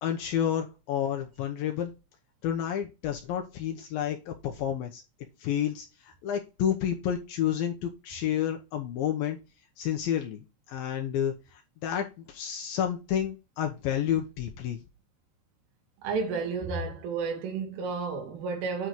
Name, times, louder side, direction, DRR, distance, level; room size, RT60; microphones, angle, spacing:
voice 1, 0.0-1.9 2.4-5.0 5.4-5.9 6.2-9.4 9.8-10.4 10.7-11.3 11.8-14.8, left 10 dB, 80° left, 2.1 m, -30 dB
voice 2, 16.0-18.9, right 4 dB, 85° right, 5.3 m, -31 dB
9.9 x 3.9 x 4.5 m
omnidirectional pair, 5.5 m